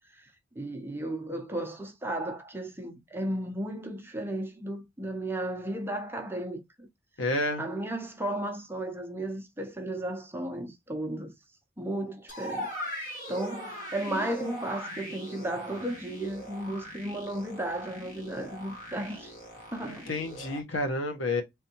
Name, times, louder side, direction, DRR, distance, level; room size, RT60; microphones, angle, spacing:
voice 1, 0.6-6.6 7.6-11.3 11.8-19.3 19.7-20.1, right 1 dB, 10° right, 0.7 m, -34 dB
voice 2, 7.2-7.7 19.8-21.4, left 2 dB, 75° left, 1.2 m, -30 dB
sound 1, 12.3-20.6, equal, 45° left, 1.8 m, -40 dB
3.5 x 3.4 x 2.8 m
head